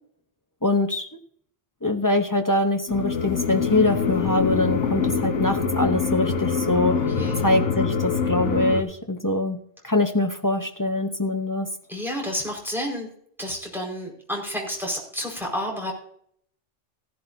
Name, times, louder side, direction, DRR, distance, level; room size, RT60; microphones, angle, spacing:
voice 1, 0.6-1.1 1.8-7.0 7.4-11.7, left 2 dB, 20° left, 5 dB, 0.6 m, -23 dB
sound 1, 2.9-8.8, left 6 dB, 75° left, 1.4 m, -24 dB
voice 2, 6.7-7.5 11.9-13.1 13.4-15.9, equal, ahead, -2 dB, 4.7 m, -30 dB
16.5 x 11.0 x 2.7 m, 0.64 s
omnidirectional pair, 1.2 m